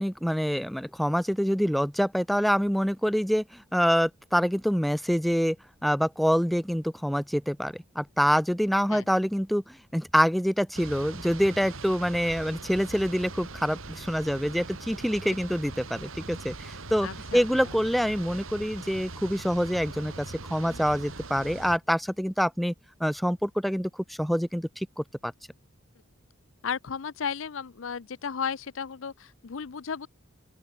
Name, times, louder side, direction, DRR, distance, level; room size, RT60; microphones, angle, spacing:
voice 1, 0.0-5.6 5.8-22.7 23.0-25.3, equal, ahead, 0.5 m, -26 dB
sound 1, 10.7-21.8, right 3 dB, 75° right, 2.4 m, -41 dB
voice 2, 17.0-17.8 20.6-20.8 26.6-30.1, left 6 dB, 65° left, 0.6 m, -34 dB
open air
head